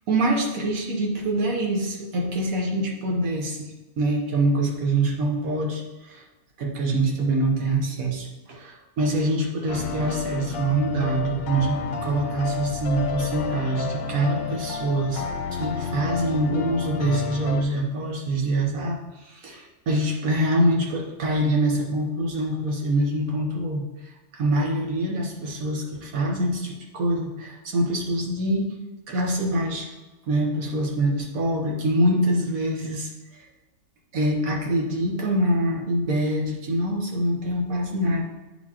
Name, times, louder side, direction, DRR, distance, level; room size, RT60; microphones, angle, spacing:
voice 1, 0.1-6.2 6.6-15.2 15.5-28.7 29.1-29.9 30.3-33.4 34.1-38.2, right 1 dB, 75° right, 0 dB, 1.6 m, -25 dB
sound 1, 9.7-17.6, left 5 dB, 80° left, 1.1 m, -31 dB
9.2 x 4.4 x 2.9 m, 1.1 s
omnidirectional pair, 1.5 m